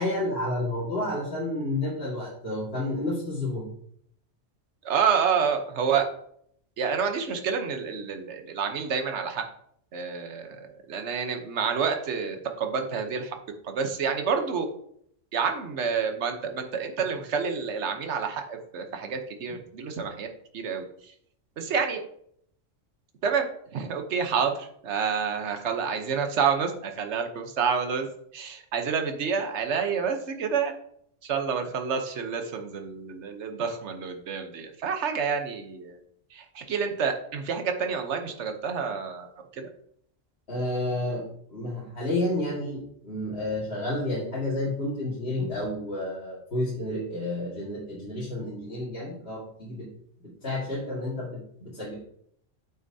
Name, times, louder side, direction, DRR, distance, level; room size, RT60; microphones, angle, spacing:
voice 1, 0.0-3.6 40.5-41.2 41.5-49.9 50.2-51.9, left 1 dB, 55° left, -7 dB, 2.2 m, -30 dB
voice 2, 4.8-6.0 6.8-9.4 9.9-13.3 13.6-14.7 15.3-20.3 20.5-21.1 21.6-22.0 23.2-23.5 23.7-28.1 28.3-30.7 31.2-36.0 36.3-39.7, right 6 dB, 65° right, 5 dB, 1.2 m, -28 dB
8.7 x 6.3 x 2.7 m, 0.67 s
omnidirectional pair, 1.3 m